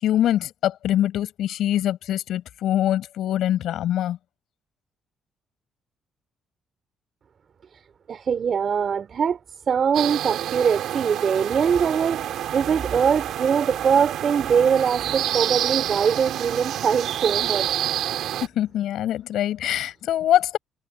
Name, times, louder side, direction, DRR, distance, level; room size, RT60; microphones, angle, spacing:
voice 1, 0.0-4.2 18.6-20.6, left 12 dB, 75° left, 7.1 m, -23 dB
voice 2, 8.1-9.4 9.7-17.8, right 7 dB, 50° right, 4.0 m, -22 dB
sound 1, 9.9-18.5, right 11 dB, 75° right, 2.4 m, -28 dB
cardioid pair, 85°, 0 cm